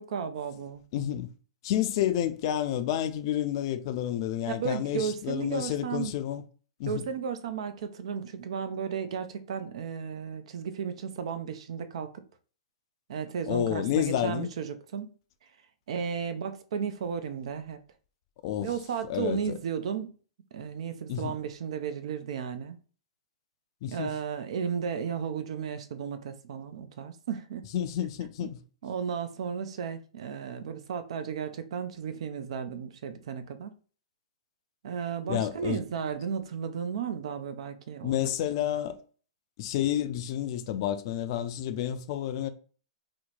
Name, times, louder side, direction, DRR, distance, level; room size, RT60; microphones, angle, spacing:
voice 1, 0.0-0.8 4.5-6.1 6.9-12.1 13.1-15.1 15.9-17.8 18.6-20.1 20.5-22.8 23.9-27.7 28.8-33.7 34.8-38.1, right 7 dB, 65° right, 0.5 m, -34 dB
voice 2, 0.9-1.3 1.6-6.4 6.8-7.0 13.5-14.5 18.4-18.7 19.1-19.6 21.1-21.4 23.8-24.1 27.7-28.6 35.3-35.8 38.0-39.0 39.6-42.5, left 11 dB, 50° left, 0.4 m, -30 dB
2.9 x 2.1 x 4.0 m
hypercardioid pair, 125°, 3 cm